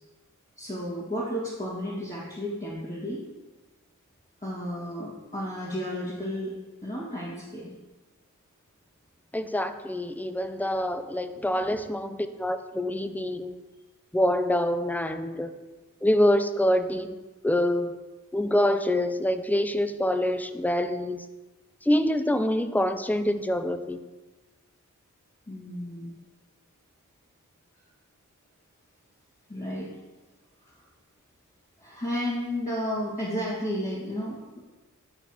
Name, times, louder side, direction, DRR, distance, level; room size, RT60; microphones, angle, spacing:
voice 1, 0.6-3.2 4.4-6.5 6.8-7.7 11.4-11.8 25.5-26.1 29.5-29.9 30.6-30.7 31.8-34.6, equal, 25° left, -9 dB, 1.8 m, -33 dB
voice 2, 9.3-13.6 14.1-15.5 16.0-17.2 17.4-18.0 18.3-21.2 21.8-24.0, left 1 dB, 5° left, 9 dB, 0.4 m, -26 dB
10.0 x 4.0 x 2.9 m, 1.2 s
wide cardioid pair, 65°, 32 cm